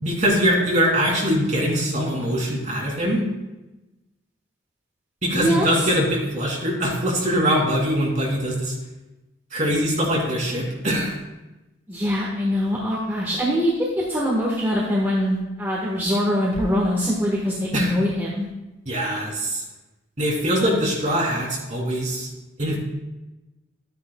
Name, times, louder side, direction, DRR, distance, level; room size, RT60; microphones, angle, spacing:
voice 1, 0.0-3.2 5.2-8.7 9.5-11.2 17.7-17.9 18.9-19.6 20.2-22.3 22.6-22.8, equal, 40° right, -3 dB, 2.7 m, -22 dB
voice 2, 5.3-5.9 11.9-18.5, equal, 10° right, -5 dB, 1.2 m, -23 dB
12.5 x 9.4 x 2.2 m, 1.0 s
head